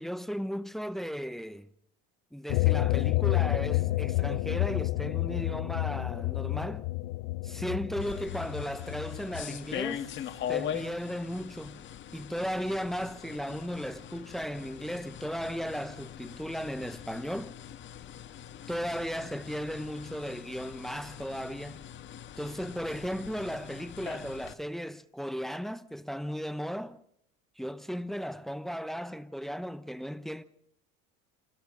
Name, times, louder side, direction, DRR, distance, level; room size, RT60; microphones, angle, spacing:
voice 1, 0.0-1.7 2.3-6.9 7.4-10.1 10.5-11.8 12.1-17.5 18.7-21.9 22.4-27.0 27.6-30.4, equal, ahead, 0.8 m, -36 dB
sound 1, 2.5-9.4, left 19 dB, 60° left, 0.8 m, -29 dB
sound 2, 8.0-24.5, left 10 dB, 40° left, 1.5 m, -42 dB
29.0 x 25.5 x 3.8 m
cardioid pair, 145°, 30 cm